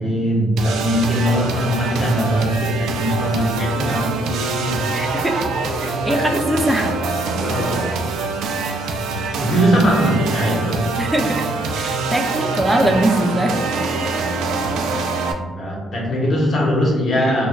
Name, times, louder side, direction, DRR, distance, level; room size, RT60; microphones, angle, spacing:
voice 1, 0.0-4.9 7.4-7.9 9.4-10.8 12.7-12.8 15.3-17.5, equal, 45° left, -4 dB, 1.2 m, -20 dB
sound 1, 0.6-15.3, right 3 dB, 85° right, 0.3 m, -24 dB
voice 2, 4.9-5.5 5.8-7.0 11.0-11.5 11.8-13.6, right 1 dB, 10° right, 5 dB, 0.3 m, -21 dB
4.2 x 2.4 x 2.3 m, 1.5 s
cardioid pair, 90°, 0 cm